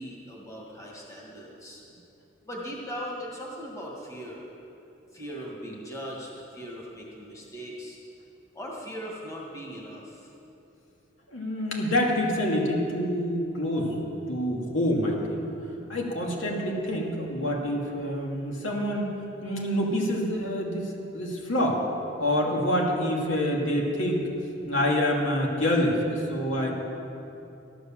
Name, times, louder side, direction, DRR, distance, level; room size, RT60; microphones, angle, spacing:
voice 1, 0.0-1.8 2.4-4.5 5.1-8.0 8.5-10.3, equal, 15° left, -3 dB, 1.9 m, -39 dB
voice 2, 11.3-15.4 15.9-19.2 19.4-21.8 22.2-24.3 24.7-26.7, equal, 85° left, -1 dB, 2.5 m, -27 dB
13.5 x 11.0 x 7.4 m, 2.8 s
head